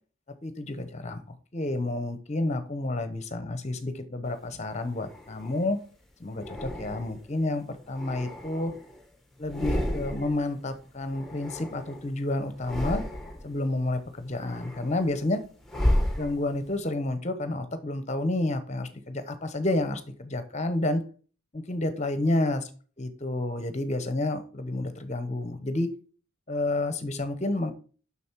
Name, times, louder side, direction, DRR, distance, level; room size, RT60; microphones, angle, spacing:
voice 1, 0.4-1.2 1.5-5.8 6.2-8.7 9.4-13.0 13.4-15.4 16.2-21.0 21.5-22.6 23.0-25.9 26.5-27.7, left 2 dB, 30° left, 10 dB, 0.9 m, -30 dB
sound 1, 4.5-5.7 6.4-7.3 7.8-9.0 9.4-10.5 10.7-12.1 12.5-13.6 14.0-16.8, left 1 dB, ahead, 1.2 m, -32 dB
7.1 x 6.1 x 4.6 m, 0.41 s
head